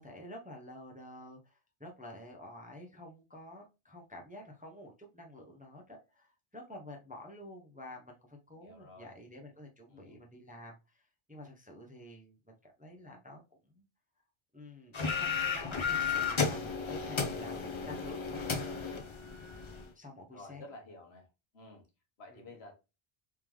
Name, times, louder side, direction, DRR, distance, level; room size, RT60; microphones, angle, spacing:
voice 1, 0.0-13.8 14.5-18.7 19.9-20.7 22.3-22.5, left 1 dB, 10° right, 0.6 m, -49 dB
voice 2, 8.6-9.1 9.9-10.2 20.3-21.3 21.5-21.8 22.2-22.7, left 2 dB, 85° left, 1.4 m, -51 dB
sound 1, 14.9-19.9, left 5 dB, 35° left, 0.5 m, -33 dB
3.6 x 3.4 x 3.0 m
omnidirectional pair, 1.0 m